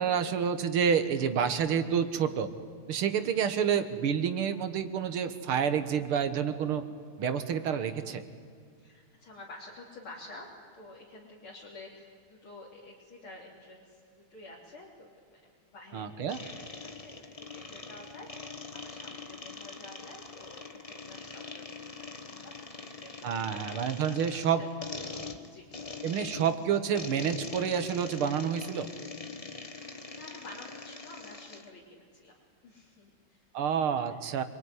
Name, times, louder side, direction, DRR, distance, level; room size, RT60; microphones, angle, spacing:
voice 1, 0.0-2.5 2.9-6.8 7.2-8.2 15.9-16.4 23.2-24.6 26.0-28.9 33.5-34.4, right 7 dB, 80° right, 10 dB, 2.2 m, -28 dB
voice 2, 3.1-3.4 6.8-7.0 8.8-10.5 10.7-21.9 22.2-23.8 24.1-24.7 25.4-25.7 30.1-33.4 34.2-34.4, left 2 dB, 70° left, -4 dB, 4.0 m, -50 dB
sound 1, 16.3-31.7, left 3 dB, 20° left, 1.2 m, -43 dB
27.0 x 22.0 x 9.7 m, 2.1 s
omnidirectional pair, 2.4 m